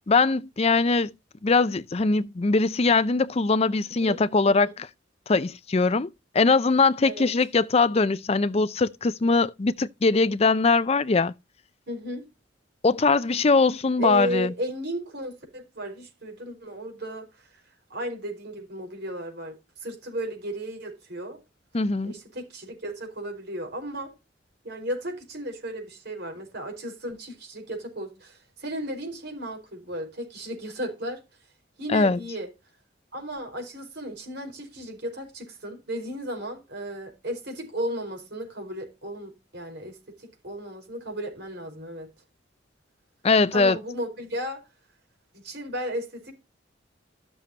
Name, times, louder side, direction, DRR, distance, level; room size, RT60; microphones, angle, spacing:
voice 1, 0.1-1.1 1.4-4.9 5.3-6.1 6.3-11.3 12.8-14.5 21.7-22.1 31.9-32.2 43.2-43.8, left 3 dB, 30° left, 0.5 m, -21 dB
voice 2, 4.0-4.6 7.0-7.3 11.9-12.3 14.0-17.6 17.9-19.5 19.8-21.4 22.0-24.1 24.6-31.2 31.8-32.5 33.1-42.1 43.5-44.6 45.3-46.3, equal, 55° right, 4.9 m, -34 dB
13.0 x 7.0 x 2.8 m
head